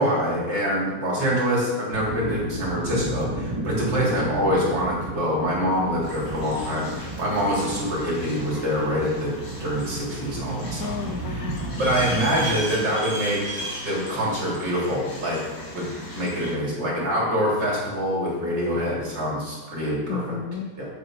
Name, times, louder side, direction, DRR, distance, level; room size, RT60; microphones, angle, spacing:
voice 1, 0.0-9.3 9.6-10.9 11.3-11.4 11.8-15.4 15.7-15.9 16.1-20.4 20.8-20.9, equal, 75° right, -5 dB, 3.8 m, -25 dB
sound 1, 1.9-12.4, right 2 dB, 25° right, 0.7 m, -33 dB
sound 2, 6.0-16.5, equal, 50° left, 2.4 m, -37 dB
voice 2, 10.8-12.5 20.1-20.7, left 6 dB, 70° left, 5 dB, 0.9 m, -33 dB
8.3 x 7.9 x 4.8 m, 1.2 s
omnidirectional pair, 2.0 m